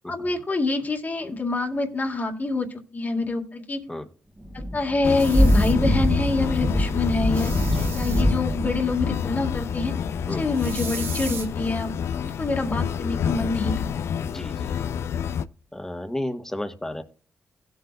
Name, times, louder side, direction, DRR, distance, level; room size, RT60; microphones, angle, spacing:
voice 1, 0.1-3.8 4.7-7.5 7.9-9.9 10.2-11.9 12.2-13.7, left 3 dB, 35° left, 2 dB, 1.9 m, -26 dB
Thunder / Rain, 4.4-13.9, equal, 10° right, 1.5 m, -26 dB
sound 1, 5.0-15.5, left 8 dB, 70° left, 0.4 m, -28 dB
sound 2, 5.1-5.7 7.2-8.2 10.5-11.5, right 5 dB, 55° right, 1.7 m, -37 dB
voice 2, 7.5-7.9 10.3-10.5 14.2-14.7 15.7-17.0, left 1 dB, 10° left, 7 dB, 1.5 m, -33 dB
16.0 x 7.9 x 2.4 m, 0.40 s
cardioid pair, 65°, 5 cm